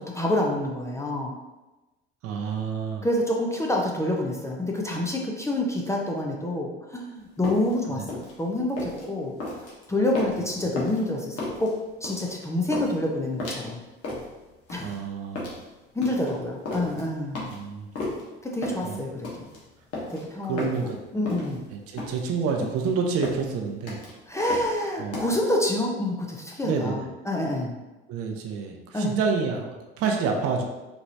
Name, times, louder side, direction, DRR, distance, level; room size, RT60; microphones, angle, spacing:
voice 1, 0.0-1.3 3.0-11.8 12.0-13.8 14.7-15.0 15.9-17.5 18.4-19.5 20.1-21.6 24.3-27.8 28.9-29.1, left 1 dB, 10° left, -1 dB, 0.6 m, -28 dB
voice 2, 2.2-3.1 7.9-8.1 14.8-15.5 17.5-17.9 18.8-19.0 20.4-21.0 21.7-24.0 24.4-24.5 25.0-25.3 26.6-27.0 28.1-30.6, right 5 dB, 45° right, 2 dB, 0.7 m, -28 dB
sound 1, 7.2-25.2, left 2 dB, 45° left, 1.4 m, -35 dB
4.6 x 3.0 x 2.7 m, 1.1 s
figure-of-eight pair, 65°, 33 cm